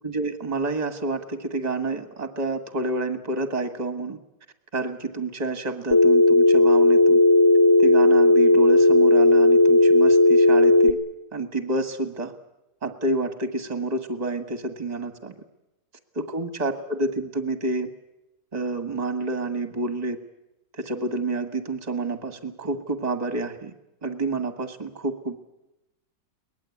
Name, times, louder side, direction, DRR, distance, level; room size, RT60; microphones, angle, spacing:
voice 1, 0.0-4.2 4.7-7.2 7.8-11.0 11.3-12.3 12.8-15.3 16.1-17.9 18.5-20.2 20.8-23.7 24.0-25.4, right 2 dB, 25° right, 9 dB, 1.6 m, -29 dB
Telephone, 5.9-10.9, left 2 dB, 15° left, 0.8 m, -15 dB
23.0 x 19.0 x 8.5 m, 0.91 s
omnidirectional pair, 1.9 m